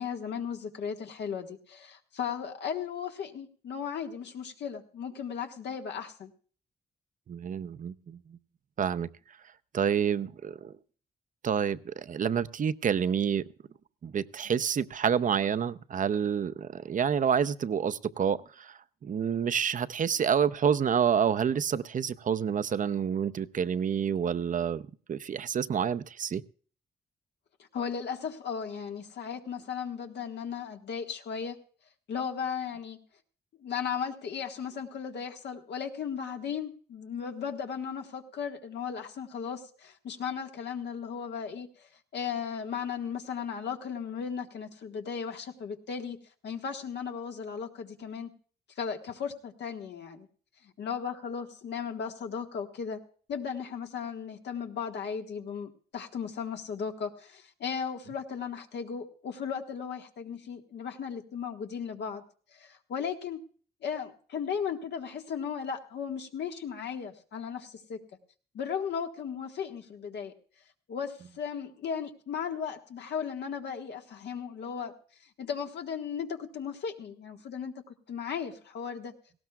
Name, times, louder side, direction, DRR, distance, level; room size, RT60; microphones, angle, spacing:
voice 1, 0.0-6.3 27.7-31.6 32.1-33.0 33.6-46.2 46.4-48.3 48.8-50.3 50.6-53.0 53.3-62.2 62.5-63.4 63.8-68.0 68.5-70.3 70.9-74.9 75.4-79.1, left 7 dB, 80° left, 1.6 m, -36 dB
voice 2, 7.3-8.4 8.8-9.1 9.7-10.7 11.4-13.4 14.0-24.8 25.1-26.4, right 7 dB, 50° right, 0.6 m, -28 dB
18.5 x 16.5 x 2.3 m
cardioid pair, 95°, 17 cm